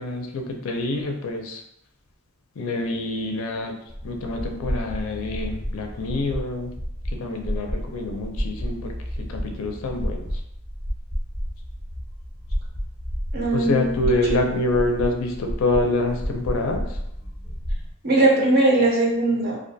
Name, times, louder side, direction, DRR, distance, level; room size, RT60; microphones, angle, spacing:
voice 1, 0.0-1.6 2.6-3.8 4.0-6.7 7.1-10.3 13.5-17.0, left 2 dB, 70° left, 3 dB, 0.4 m, -26 dB
sound 1, 3.9-17.9, equal, 20° left, 0.7 m, -31 dB
voice 2, 13.3-14.0 14.3-14.5 18.0-19.6, right 2 dB, 45° right, -2 dB, 0.5 m, -20 dB
2.4 x 2.2 x 2.6 m, 0.77 s
head